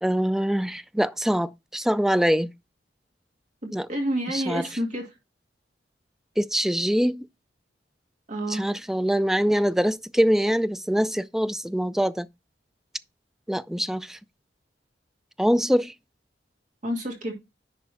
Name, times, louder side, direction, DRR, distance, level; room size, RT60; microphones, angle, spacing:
voice 1, 0.0-2.5 3.7-3.9 4.3-4.7 6.4-7.3 8.5-12.3 13.5-14.2 15.4-15.9, equal, ahead, 0.3 m, -24 dB
voice 2, 3.6-5.1 8.3-8.7 16.8-17.3, equal, 45° right, 2.1 m, -29 dB
10.5 x 3.5 x 4.5 m
head